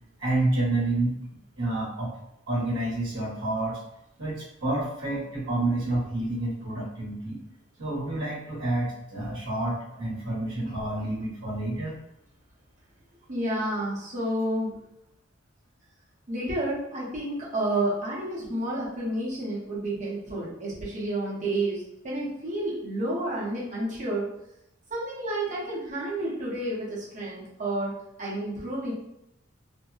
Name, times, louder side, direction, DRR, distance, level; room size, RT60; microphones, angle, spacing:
voice 1, 0.2-2.1 2.5-3.8 4.2-7.4 7.8-12.0, right 2 dB, 65° right, -6 dB, 1.0 m, -29 dB
voice 2, 13.3-14.8 16.3-24.3 24.9-28.9, right 1 dB, 40° right, -7 dB, 0.9 m, -30 dB
2.6 x 2.1 x 2.4 m, 0.82 s
head